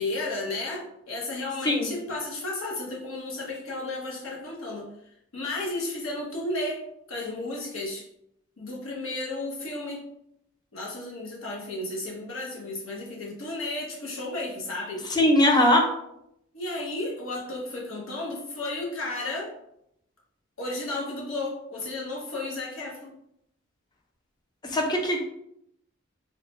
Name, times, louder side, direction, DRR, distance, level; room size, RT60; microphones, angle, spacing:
voice 1, 0.0-4.9 5.3-6.8 7.1-8.0 8.6-10.0 10.7-15.1 16.5-19.5 20.6-23.1, left 2 dB, 70° left, -2 dB, 0.9 m, -33 dB
voice 2, 15.1-15.9 24.7-25.2, left 1 dB, 20° left, 1 dB, 0.4 m, -20 dB
3.2 x 2.0 x 3.1 m, 0.77 s
head